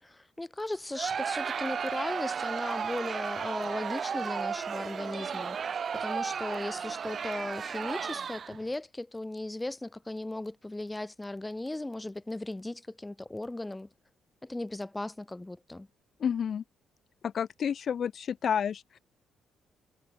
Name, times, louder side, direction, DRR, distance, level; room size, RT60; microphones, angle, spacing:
voice 1, 0.0-13.9 14.4-15.9, left 2 dB, 10° left, 5.4 m, -37 dB
Crowd, 0.9-8.7, right 6 dB, 50° right, 0.9 m, -34 dB
voice 2, 16.2-16.6 17.2-19.0, left 8 dB, 55° left, 0.7 m, -30 dB
cardioid pair, 90°, 0 cm